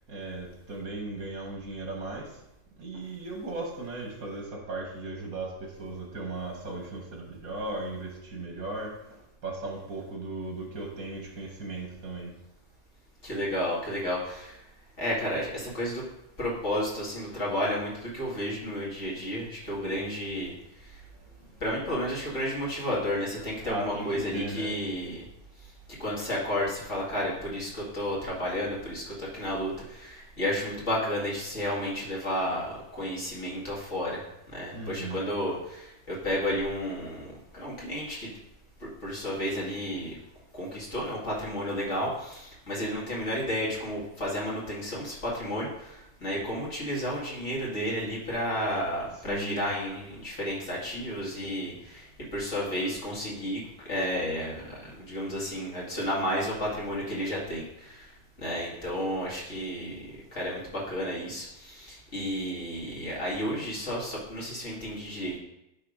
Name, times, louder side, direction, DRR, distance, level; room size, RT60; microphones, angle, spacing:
voice 1, 0.1-2.3 2.8-8.9 9.4-12.3 23.6-24.8 34.7-35.3 49.3-49.6, right 2 dB, 75° right, 0 dB, 2.2 m, -37 dB
voice 2, 13.2-14.6 15.0-16.1 16.4-20.5 20.8-20.9 21.6-25.2 26.0-34.2 34.5-38.3 39.0-40.2 40.5-58.1 58.4-60.0 60.3-65.4, equal, 55° left, -5 dB, 2.5 m, -32 dB
10.5 x 3.6 x 5.0 m, 0.90 s
omnidirectional pair, 1.5 m